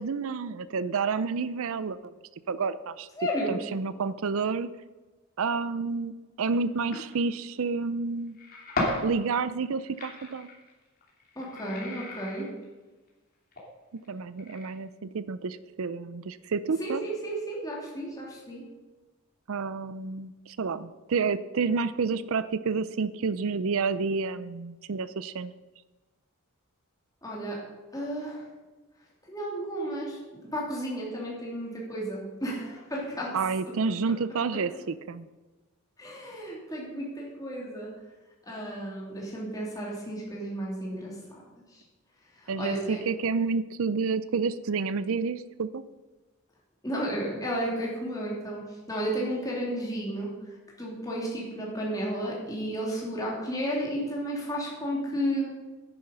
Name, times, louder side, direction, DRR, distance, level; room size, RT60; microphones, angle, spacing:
voice 1, 0.0-2.1 2.5-3.1 3.5-4.7 5.4-8.4 9.0-10.5 14.1-17.1 19.5-25.5 33.3-35.3 42.5-45.8, right 4 dB, 65° right, 15 dB, 0.5 m, -29 dB
voice 2, 3.2-3.5 11.4-12.5 16.8-18.6 27.2-27.6 27.9-28.4 29.3-30.2 30.5-33.4 36.0-37.9 38.4-41.2 42.4-43.0 46.8-48.6 48.9-50.3 50.8-55.5, equal, 15° left, -4 dB, 3.2 m, -32 dB
sound 1, 6.5-6.6 6.9-7.1 8.3-9.1 9.5-12.6 13.5-13.6 14.0-14.1 14.4-14.7, left 2 dB, 40° left, 3.1 m, -34 dB
10.5 x 10.0 x 5.4 m, 1.2 s
head